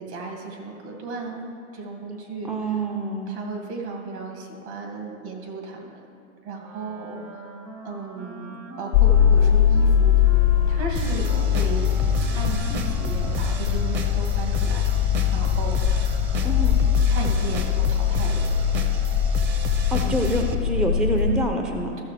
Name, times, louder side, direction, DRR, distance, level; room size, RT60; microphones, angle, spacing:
voice 1, 0.0-2.5 3.3-6.1 6.4-7.5 7.8-10.4 10.7-11.9 12.3-14.8 15.3-16.2 17.1-18.5 20.0-20.3, right 3 dB, 65° right, 0 dB, 2.3 m, -35 dB
voice 2, 2.4-3.4 16.4-16.8 19.9-22.0, right 1 dB, ahead, 3 dB, 0.4 m, -26 dB
Wind instrument woodwind instrument, 6.6-14.8, right 2 dB, 90° right, 1.2 m, -43 dB
sound 1, 8.9-21.5, left 9 dB, 60° left, 0.5 m, -21 dB
sound 2, 10.9-20.5, right 4 dB, 30° right, 0.7 m, -32 dB
14.0 x 6.7 x 3.3 m, 2.4 s
hypercardioid pair, 105°, 37 cm